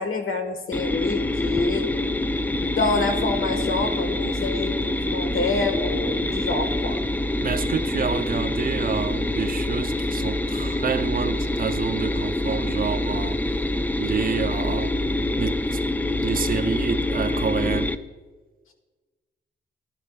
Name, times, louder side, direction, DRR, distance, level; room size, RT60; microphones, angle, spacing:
voice 1, 0.0-1.9 2.5-7.0, left 3 dB, 80° left, 1.4 m, -27 dB
sound 1, 0.7-18.0, left 1 dB, 10° left, 0.4 m, -26 dB
voice 2, 7.4-13.4 14.0-14.9 15.4-15.8 16.2-17.9, right 7 dB, 45° right, 0.5 m, -28 dB
16.0 x 11.5 x 2.3 m
cardioid pair, 90°, 21 cm